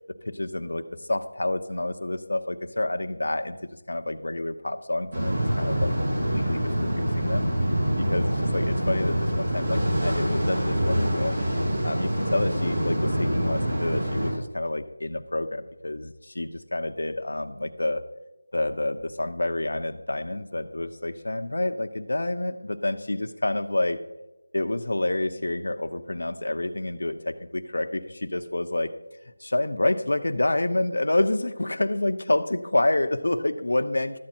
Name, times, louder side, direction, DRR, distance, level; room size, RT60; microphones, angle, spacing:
voice 1, 0.2-3.6 3.9-7.5 8.0-11.4 11.8-18.0 18.5-24.0 24.5-28.9 29.4-34.2, left 2 dB, 65° left, 8 dB, 0.8 m, -28 dB
sound 1, 5.1-14.3, equal, 30° right, 2.8 m, -25 dB
13.0 x 8.5 x 4.4 m, 1.0 s
figure-of-eight pair, 175°, 0 cm